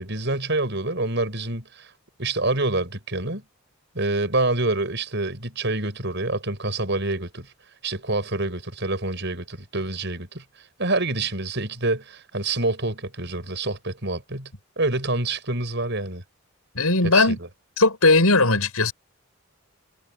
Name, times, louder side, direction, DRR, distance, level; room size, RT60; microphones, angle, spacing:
voice 1, 0.0-1.9 2.2-3.4 3.9-7.5 7.8-10.4 10.8-14.5 14.8-16.2 17.0-17.4, right 2 dB, 55° right, 6.8 m, -27 dB
voice 2, 16.7-17.4 17.8-18.9, left 3 dB, 90° left, 7.7 m, -18 dB
head